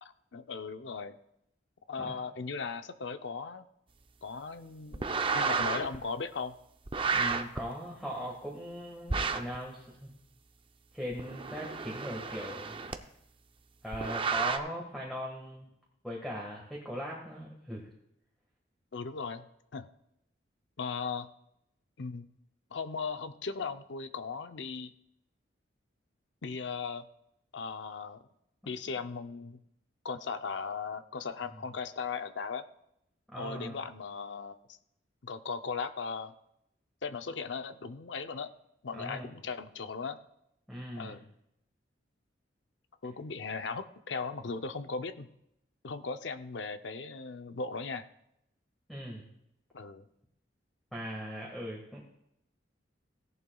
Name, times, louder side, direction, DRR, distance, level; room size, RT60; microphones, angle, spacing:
voice 1, 0.0-1.2 1.9-3.6 4.2-6.6 18.9-19.4 19.7-19.9 20.8-21.3 22.0-22.3 22.7-24.9 26.4-27.1 27.5-28.2 28.7-29.6 30.0-32.7 33.4-34.8 35.2-36.3 37.0-38.5 38.8-40.2 41.0-41.2 43.0-45.3 45.8-48.1 49.7-50.0, left 5 dB, 70° left, 10 dB, 0.6 m, -38 dB
sound 1, 4.9-6.0 6.9-7.6 9.1-9.6 11.1-12.9 13.9-14.6, right 4 dB, 30° right, 0.6 m, -31 dB
voice 2, 7.1-10.1 10.9-12.8 13.8-15.7 16.0-17.9 33.3-33.8 38.9-39.3 40.7-41.2 48.9-49.3 50.9-52.0, equal, ahead, -3 dB, 1.6 m, -39 dB
17.0 x 11.0 x 2.3 m, 0.80 s
head